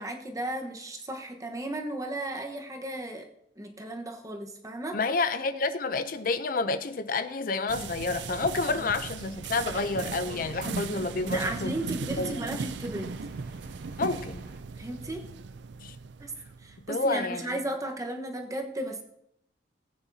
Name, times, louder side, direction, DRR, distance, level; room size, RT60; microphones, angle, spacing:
voice 1, 0.0-3.3 3.6-5.0 8.7-8.9 11.3-13.1 14.8-15.2 16.2-16.3 16.6-19.0, right 1 dB, 20° right, 2 dB, 1.2 m, -35 dB
voice 2, 4.9-11.7 12.2-12.3 14.0-14.4 15.8-16.0 16.9-17.6, left 3 dB, 50° left, 11 dB, 0.5 m, -29 dB
sound 1, 7.7-16.9, right 4 dB, 80° right, 0.4 m, -37 dB
sound 2, 9.5-14.6, right 2 dB, 55° right, 1.1 m, -48 dB
18.5 x 8.9 x 2.8 m, 0.77 s
head